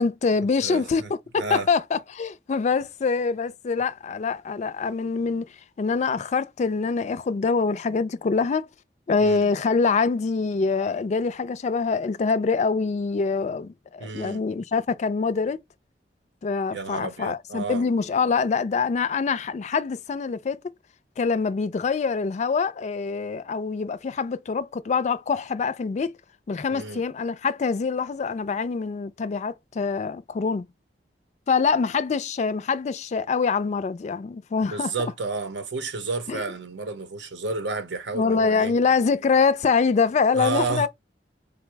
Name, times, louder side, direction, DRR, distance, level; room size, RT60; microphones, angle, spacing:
voice 1, 0.0-5.5 5.8-8.7 9.1-15.6 16.4-20.6 21.2-26.2 26.5-30.7 31.5-34.9 36.3-36.4 38.1-40.9, left 5 dB, 40° left, 0.3 m, -24 dB
voice 2, 0.6-1.7 9.2-9.5 14.0-14.4 16.7-17.8 26.7-27.0 34.7-38.7 40.3-40.9, right 3 dB, 90° right, 0.7 m, -31 dB
3.9 x 2.0 x 4.4 m
head